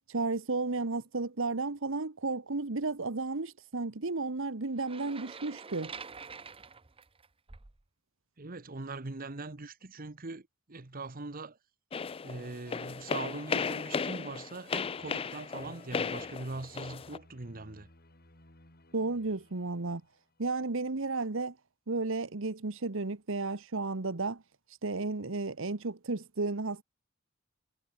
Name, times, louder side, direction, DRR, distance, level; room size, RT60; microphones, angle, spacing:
voice 1, 0.1-5.9 18.9-20.0 20.4-21.5 21.9-24.4 24.8-26.8, right 3 dB, 65° right, 1.2 m, -33 dB
sound 1, 4.8-7.8, right 5 dB, 25° right, 0.9 m, -46 dB
voice 2, 8.4-11.6 12.2-17.9, right 3 dB, 45° right, 1.3 m, -41 dB
sound 2, 11.9-17.2, left 5 dB, 25° left, 0.4 m, -35 dB
sound 3, 15.0-20.7, left 2 dB, 45° left, 5.5 m, -60 dB
head